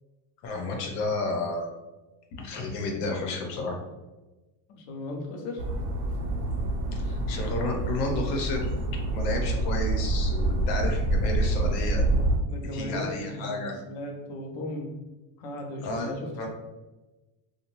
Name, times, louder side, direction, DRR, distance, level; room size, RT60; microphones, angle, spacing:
voice 1, 0.4-1.7 2.4-3.8 6.9-12.0 12.7-13.7 15.8-16.1 16.4-16.5, left 2 dB, 70° left, 2 dB, 0.8 m, -31 dB
voice 2, 4.7-5.6 12.5-14.9 15.4-16.5, left 1 dB, 45° left, 1 dB, 0.5 m, -36 dB
sound 1, 5.6-12.4, right 2 dB, 65° right, 0.6 m, -27 dB
2.5 x 2.2 x 3.0 m, 1.1 s
cardioid pair, 180°, 49 cm